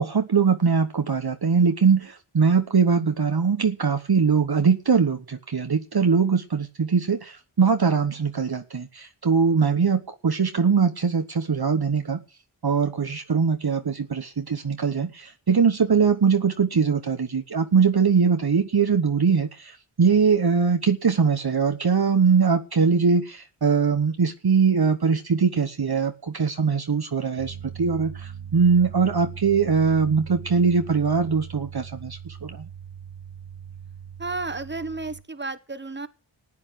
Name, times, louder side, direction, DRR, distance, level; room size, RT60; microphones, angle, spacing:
voice 1, 0.0-12.2 12.6-32.6, right 5 dB, 50° right, 1.2 m, -22 dB
sound 1, 27.4-35.2, right 8 dB, 85° right, 1.4 m, -40 dB
voice 2, 34.2-36.1, right 3 dB, 20° right, 1.5 m, -32 dB
14.5 x 8.9 x 7.7 m
cardioid pair, 45°, 48 cm